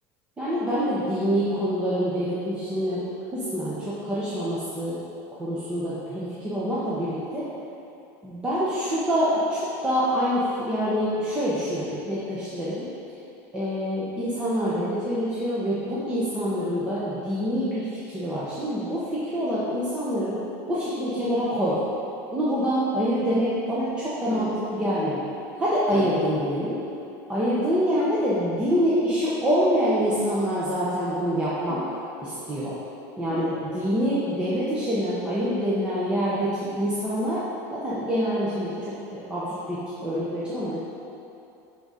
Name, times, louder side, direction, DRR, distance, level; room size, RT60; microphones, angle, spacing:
voice 1, 0.4-3.0 3.3-5.0 5.4-7.5 8.2-12.9 13.5-20.4 20.7-21.8 22.3-25.2 25.6-26.8 27.3-31.8 32.2-32.7 33.2-37.4 37.7-40.8, equal, 10° right, -9 dB, 0.9 m, -26 dB
sound 1, 24.3-25.5 25.9-27.1 28.0-29.2 29.6-31.0 31.7-32.9 33.3-34.7, left 3 dB, 85° left, 0.8 m, -39 dB
7.8 x 3.9 x 4.9 m, 2.8 s
cardioid pair, 170°, 9 cm